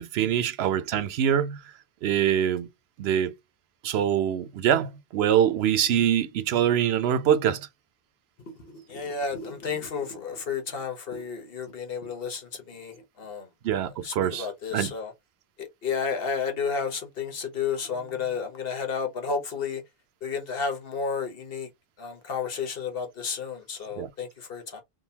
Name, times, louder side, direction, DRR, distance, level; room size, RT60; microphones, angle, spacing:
voice 1, 0.0-1.6 2.0-2.7 3.0-3.3 3.8-7.7 13.6-14.9 24.0-24.1, right 9 dB, 85° right, 0.8 m, -24 dB
voice 2, 8.9-13.5 14.0-15.1 15.6-19.8 20.2-21.7 22.0-24.8, left 5 dB, 65° left, 1.2 m, -32 dB
3.7 x 2.4 x 2.7 m
omnidirectional pair, 1.0 m